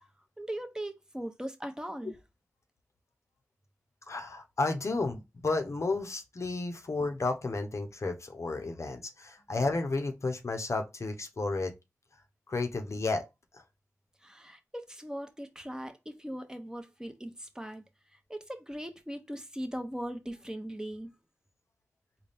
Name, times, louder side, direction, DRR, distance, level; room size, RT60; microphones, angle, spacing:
voice 1, 0.4-2.2 14.2-17.8 18.1-21.1, equal, 10° right, 0.7 m, -39 dB
voice 2, 4.1-11.7 12.5-13.3 13.5-13.6, left 3 dB, 55° left, 0.7 m, -32 dB
4.0 x 2.2 x 3.4 m
cardioid pair, 55°, 6 cm